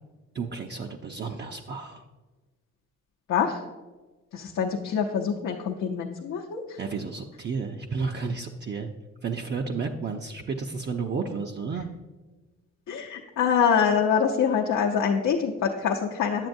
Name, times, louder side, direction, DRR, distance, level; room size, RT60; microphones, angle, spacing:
voice 1, 0.3-2.0 6.8-8.9 9.2-11.9, right 4 dB, 35° right, 3 dB, 0.5 m, -32 dB
voice 2, 3.3-3.6 4.3-6.8 12.9-16.5, left 7 dB, 70° left, 0 dB, 0.7 m, -25 dB
9.0 x 7.1 x 2.6 m, 1.2 s
cardioid pair, 90°, 30 cm